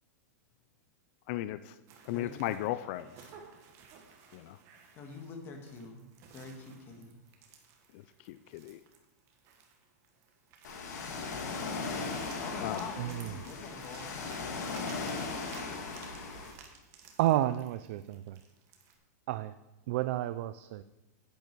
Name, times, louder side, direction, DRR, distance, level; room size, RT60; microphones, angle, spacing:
voice 1, 1.3-1.7 2.1-3.3 4.3-4.6 7.9-8.8 12.6-12.8, left 14 dB, 40° left, 13 dB, 0.4 m, -36 dB
sound 1, 1.9-19.0, right 6 dB, 30° right, 1.4 m, -57 dB
voice 2, 2.1-2.5 4.9-6.1 6.3-7.1 12.4-14.0, left 4 dB, 25° left, 4 dB, 1.6 m, -44 dB
Ocean, 10.6-16.5, left 4 dB, 90° left, 2.1 m, -38 dB
voice 3, 13.0-13.3 17.2-18.4 19.3-19.5 19.9-20.8, right 14 dB, 45° right, 13 dB, 0.3 m, -31 dB
10.0 x 9.1 x 4.6 m, 1.0 s
supercardioid pair, 160°, 9 cm